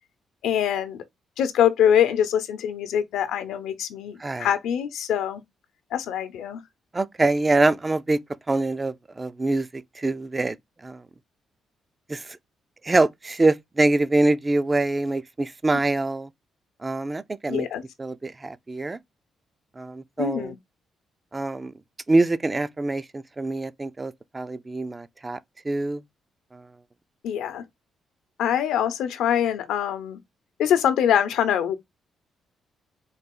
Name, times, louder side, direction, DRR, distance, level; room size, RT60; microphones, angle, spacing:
voice 1, 0.4-1.0 1.4-5.4 5.9-6.6 17.5-17.8 20.2-20.5 27.2-27.6 28.4-30.2 30.6-31.8, left 9 dB, 90° left, 0.7 m, -24 dB
voice 2, 6.9-8.2 8.5-11.0 12.1-12.4 12.8-16.3 16.8-17.7 18.0-19.0 19.8-20.5 21.3-21.7 22.1-25.4 25.6-26.0 26.5-26.7, right 2 dB, 20° right, 0.3 m, -24 dB
3.9 x 2.4 x 3.7 m
cardioid pair, 110°, 0 cm